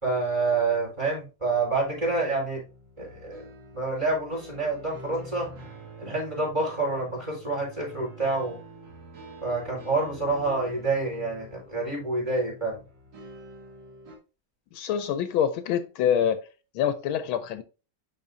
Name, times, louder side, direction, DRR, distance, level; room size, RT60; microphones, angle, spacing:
voice 1, 0.0-2.6 3.0-3.5 3.7-5.5 6.0-8.6 9.4-12.8, right 3 dB, 15° right, 4.1 m, -28 dB
sound 1, 1.4-14.2, right 1 dB, 60° right, 2.3 m, -46 dB
voice 2, 14.7-16.4 16.7-17.6, left 9 dB, 80° left, 1.4 m, -25 dB
10.5 x 4.3 x 2.6 m
omnidirectional pair, 2.3 m